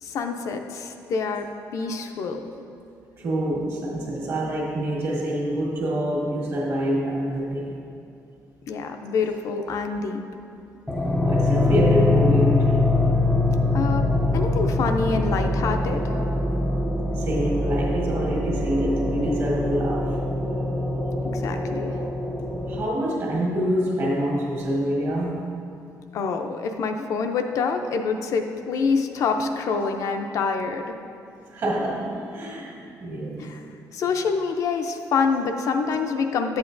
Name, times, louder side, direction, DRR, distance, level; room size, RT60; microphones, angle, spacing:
voice 1, 0.0-2.4 8.7-10.2 13.7-16.2 21.3-22.0 26.1-31.0 33.4-33.6 33.9-36.6, left 5 dB, 55° left, 5 dB, 0.5 m, -26 dB
voice 2, 3.2-7.8 9.7-9.8 11.2-13.0 14.5-14.6 15.0-15.1 15.9-16.5 17.1-20.2 21.9-22.1 22.7-25.6 28.1-28.2 28.7-28.8 29.3-29.9 31.5-33.6 35.1-35.2 35.6-36.0, equal, 45° right, -3 dB, 1.6 m, -26 dB
sound 1, 10.9-22.8, left 2 dB, 5° left, 0.5 m, -23 dB
11.0 x 8.0 x 2.6 m, 2.7 s
cardioid pair, 180°, 7 cm